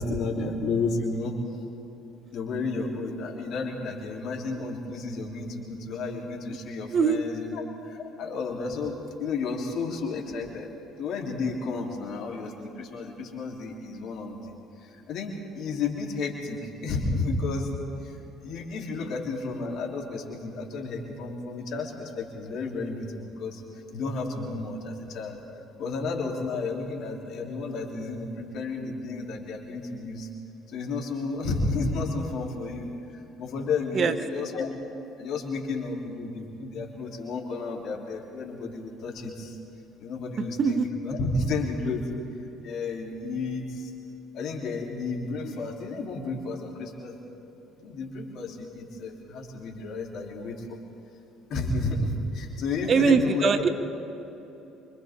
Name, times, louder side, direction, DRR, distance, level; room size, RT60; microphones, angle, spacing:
voice 1, 0.0-1.4 2.3-10.7 11.0-17.7 18.0-23.6 23.9-25.4 25.8-30.3 30.7-34.8 35.2-39.6 40.0-42.1 42.6-43.9 44.3-47.2 47.8-50.6 51.5-53.6, left 3 dB, 65° left, -1 dB, 3.8 m, -32 dB
voice 2, 40.4-40.9 52.9-53.7, right 5 dB, 45° right, 9 dB, 1.3 m, -22 dB
29.0 x 26.0 x 3.9 m, 3.0 s
hypercardioid pair, 65°, 0 cm